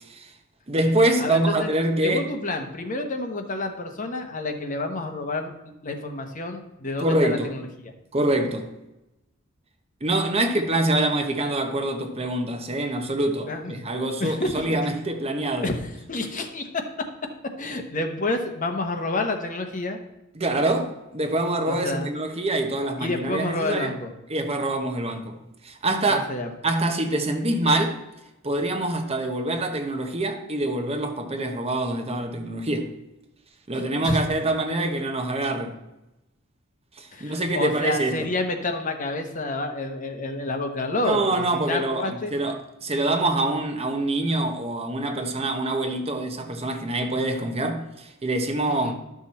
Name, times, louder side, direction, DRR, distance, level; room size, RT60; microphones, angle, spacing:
voice 1, 0.7-2.3 7.0-7.5 8.1-8.7 10.0-15.7 20.3-23.9 24.3-25.4 25.6-26.3 26.6-28.0 28.4-32.9 33.7-35.8 37.0-38.3 41.0-48.9, right 1 dB, 30° right, 1.0 m, -25 dB
voice 2, 1.2-1.7 2.0-5.5 5.8-7.9 13.5-13.8 14.2-14.8 15.6-15.7 16.1-16.8 17.6-20.0 21.7-22.1 23.0-24.1 26.1-26.5 33.7-34.2 37.1-42.3 48.6-48.9, left 2 dB, 40° left, 1.1 m, -29 dB
11.5 x 6.2 x 4.2 m
head